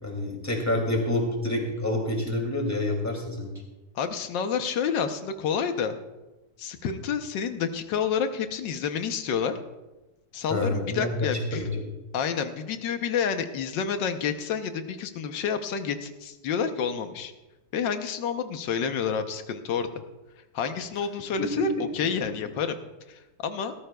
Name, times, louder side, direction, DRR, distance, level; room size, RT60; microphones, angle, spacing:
voice 1, 0.0-3.5 10.5-11.8 21.4-21.6 22.2-22.3, left 1 dB, 10° left, 0 dB, 2.4 m, -28 dB
voice 2, 3.9-6.0 6.6-9.6 10.3-11.6 12.1-17.3 17.7-19.9 20.5-21.7 21.9-22.8 23.1-23.7, left 7 dB, 90° left, 8 dB, 1.5 m, -29 dB
17.5 x 13.5 x 2.3 m, 1.1 s
omnidirectional pair, 1.9 m